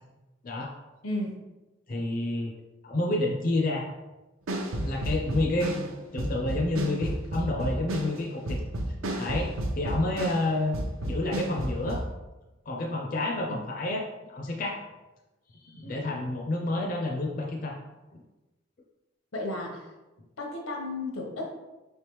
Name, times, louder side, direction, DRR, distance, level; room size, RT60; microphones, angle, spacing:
voice 1, 1.0-1.4 13.5-13.6 19.3-19.9 20.4-21.5, left 2 dB, 85° left, 1 dB, 0.9 m, -33 dB
voice 2, 1.9-2.5 2.8-3.9 4.8-8.6 9.2-10.8 11.0-12.0 12.7-14.8 15.6-17.8 18.1-18.2, left 2 dB, 40° left, 0 dB, 0.4 m, -29 dB
sound 1, 4.5-10.5 10.7-12.1, right 1 dB, 85° right, 0.7 m, -32 dB
4.7 x 3.3 x 3.0 m, 1.1 s
head